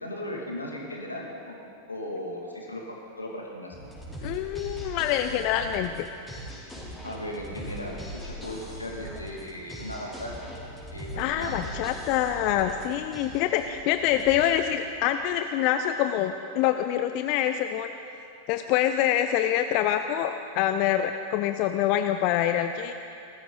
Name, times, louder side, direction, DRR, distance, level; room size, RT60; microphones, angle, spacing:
voice 1, 0.0-1.6 1.9-3.7 7.0-10.5 10.9-11.7, left 1 dB, 80° left, -1 dB, 2.4 m, -37 dB
sound 1, 3.7-15.4, right 1 dB, 10° left, 3.9 m, -41 dB
voice 2, 4.2-6.1 11.2-17.9 18.5-22.9, left 11 dB, 45° left, 8 dB, 0.5 m, -25 dB
19.0 x 14.0 x 4.0 m, 2.6 s
figure-of-eight pair, 90°, 0 cm